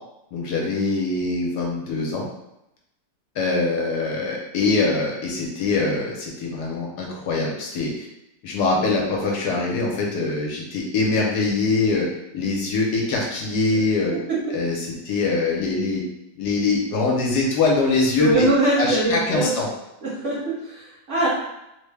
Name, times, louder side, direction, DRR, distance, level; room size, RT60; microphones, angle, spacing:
voice 1, 0.3-2.3 3.3-8.1 8.4-12.1 12.3-14.1 14.5-16.0 16.4-18.5 18.8-19.7, left 3 dB, 70° left, -2 dB, 1.2 m, -23 dB
voice 2, 14.1-14.5 18.2-19.5 20.0-21.3, right 2 dB, 50° right, -7 dB, 1.1 m, -22 dB
3.4 x 2.1 x 3.2 m, 0.87 s
omnidirectional pair, 1.9 m